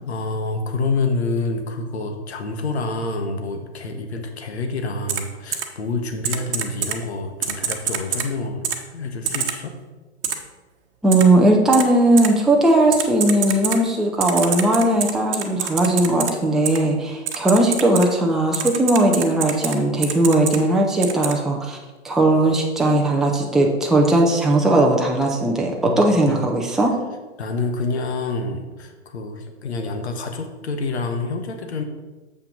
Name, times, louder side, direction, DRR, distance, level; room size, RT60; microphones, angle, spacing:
voice 1, 0.1-9.7 25.8-26.4 27.4-31.8, left 3 dB, 65° left, 5 dB, 1.4 m, -27 dB
Typing, 5.1-5.2 5.5-5.6 6.2-7.0 7.4-8.3 8.6-8.8 9.3-9.5 10.2-10.3 11.1-11.2 11.7-11.8 12.2-12.3 12.9-13.8 14.2-16.3 16.7-16.8 17.3-18.1 18.5-19.8 20.0-20.6 21.0-21.3, right 8 dB, 50° right, 1.1 m, -25 dB
voice 2, 11.0-21.8 22.0-26.9, right 1 dB, ahead, -1 dB, 0.6 m, -18 dB
7.1 x 5.8 x 5.2 m, 1.2 s
figure-of-eight pair, 120°, 35 cm